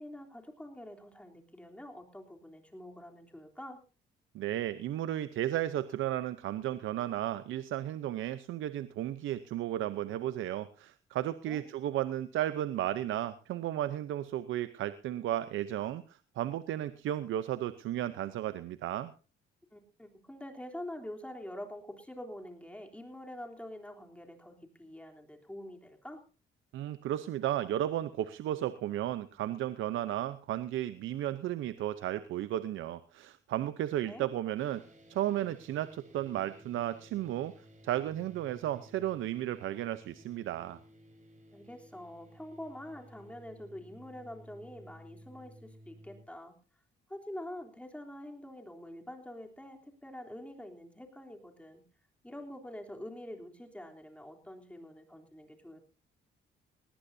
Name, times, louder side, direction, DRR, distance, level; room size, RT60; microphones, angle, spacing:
voice 1, 0.0-3.8 11.5-11.6 19.7-26.2 34.1-34.3 41.5-46.5 47.1-51.8 52.2-55.8, left 1 dB, 5° left, 2 dB, 3.4 m, -46 dB
voice 2, 4.3-19.1 26.7-34.8 35.1-37.5 37.8-40.8, right 12 dB, 80° right, 13 dB, 0.8 m, -34 dB
sound 1, 34.6-46.2, equal, 40° right, 5.0 m, -56 dB
18.5 x 18.5 x 2.7 m, 0.33 s
cardioid pair, 90°, 20 cm